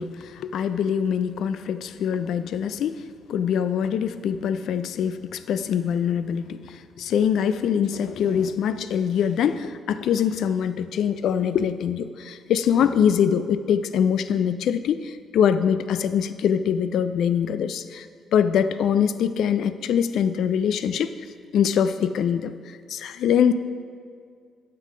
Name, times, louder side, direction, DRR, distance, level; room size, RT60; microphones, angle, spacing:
voice 1, 0.0-3.0 3.3-18.1 18.3-21.2 21.5-23.5, left 8 dB, 75° left, 12 dB, 0.3 m, -23 dB
8.2 x 5.7 x 4.9 m, 2.1 s
supercardioid pair, 55°, 0 cm